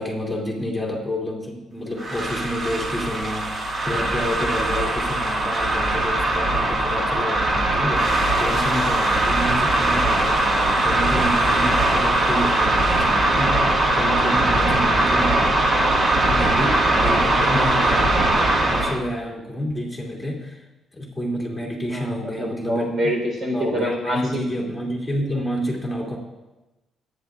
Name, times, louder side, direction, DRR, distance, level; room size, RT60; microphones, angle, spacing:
voice 1, 0.0-13.7 13.9-15.5 16.3-20.6 20.9-23.1 23.5-26.2, equal, 5° left, -2 dB, 2.6 m, -29 dB
sound 1, 2.0-19.0, right 2 dB, 40° right, 1.8 m, -20 dB
voice 2, 21.9-24.2, equal, 55° right, -1 dB, 3.9 m, -25 dB
24.0 x 9.5 x 2.5 m, 1.1 s
cardioid pair, 90°, 0 cm